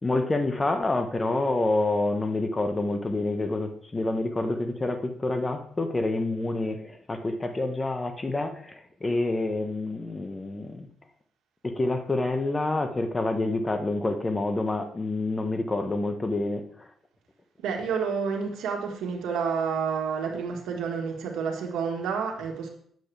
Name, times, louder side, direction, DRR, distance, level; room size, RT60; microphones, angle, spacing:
voice 1, 0.0-10.9 11.6-16.9, left 2 dB, 20° left, 6 dB, 1.2 m, -28 dB
voice 2, 17.6-22.7, right 6 dB, 85° right, 1 dB, 1.7 m, -29 dB
9.2 x 7.7 x 3.4 m, 0.62 s
cardioid pair, 90°, 0 cm